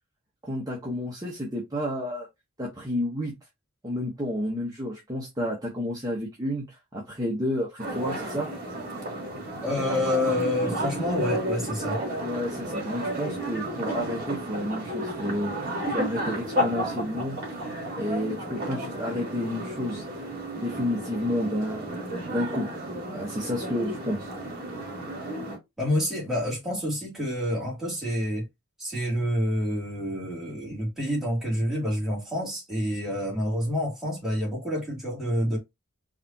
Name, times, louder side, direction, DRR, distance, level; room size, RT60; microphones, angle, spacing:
voice 1, 0.4-2.3 2.6-3.3 3.8-8.5 12.2-17.4 17.9-20.0 20.5-22.0 22.3-22.7 23.1-24.3, left 1 dB, 15° right, 1.2 m, -30 dB
sound 1, 7.8-25.6, equal, 40° right, 2.7 m, -32 dB
voice 2, 9.6-12.0 25.8-28.4 28.8-35.6, left 1 dB, ahead, 2.8 m, -28 dB
4.8 x 3.5 x 2.8 m
head